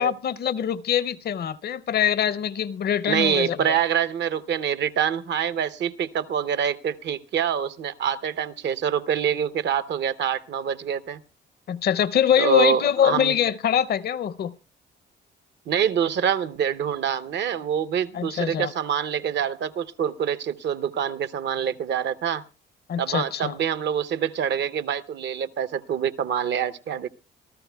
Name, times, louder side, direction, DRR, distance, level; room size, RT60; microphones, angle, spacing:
voice 1, 0.0-3.8 11.7-14.5 18.1-18.7 22.9-23.5, left 9 dB, 55° left, 0.6 m, -24 dB
voice 2, 3.1-11.2 12.4-13.3 15.7-22.4 23.0-27.1, right 8 dB, 60° right, 0.7 m, -25 dB
27.0 x 14.0 x 2.2 m
cardioid pair, 90°, 20 cm